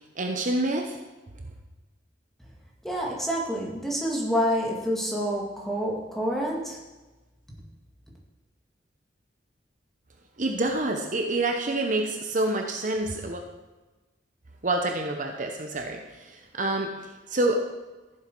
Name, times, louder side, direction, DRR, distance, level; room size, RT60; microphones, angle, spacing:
voice 1, 0.2-1.0 10.4-13.4 14.6-16.9 17.3-17.6, right 2 dB, 45° right, 3 dB, 1.0 m, -27 dB
voice 2, 2.8-6.8, equal, ahead, -3 dB, 2.1 m, -28 dB
15.0 x 7.7 x 4.7 m, 1.2 s
head